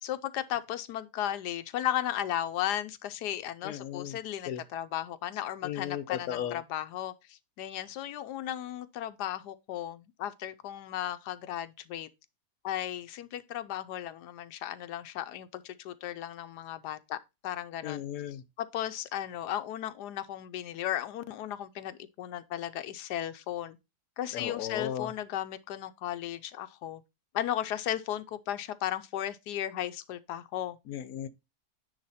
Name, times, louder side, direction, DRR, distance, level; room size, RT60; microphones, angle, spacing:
voice 1, 0.0-12.1 12.6-17.2 17.4-18.0 18.6-23.8 24.2-27.0 27.3-30.8, left 12 dB, 90° left, 1.2 m, -35 dB
voice 2, 3.6-4.2 4.5-4.6 5.6-6.6 17.8-18.4 24.3-25.1 30.9-31.3, left 10 dB, 65° left, 1.2 m, -35 dB
9.7 x 3.3 x 4.1 m
omnidirectional pair, 1.7 m